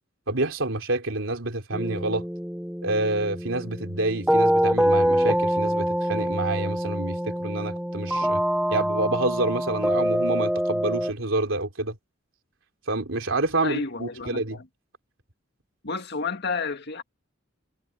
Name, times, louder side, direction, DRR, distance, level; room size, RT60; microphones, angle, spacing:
voice 1, 0.3-2.2 2.8-8.4 8.7-11.9 12.9-14.6, right 2 dB, 85° right, 3.2 m, -28 dB
sound 1, 1.7-11.1, equal, 5° right, 0.7 m, -25 dB
voice 2, 13.6-14.7 15.8-17.0, left 4 dB, 55° left, 1.9 m, -31 dB
head